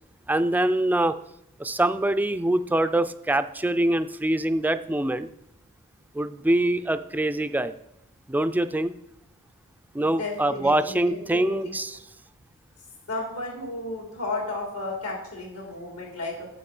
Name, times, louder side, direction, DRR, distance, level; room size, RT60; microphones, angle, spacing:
voice 1, 0.3-1.2 1.6-5.3 6.1-7.7 8.3-9.0 9.9-12.0, right 1 dB, 10° right, 11 dB, 0.3 m, -24 dB
voice 2, 10.0-11.7 13.1-16.5, left 2 dB, 90° left, -1 dB, 3.3 m, -33 dB
7.7 x 7.1 x 5.8 m, 0.79 s
head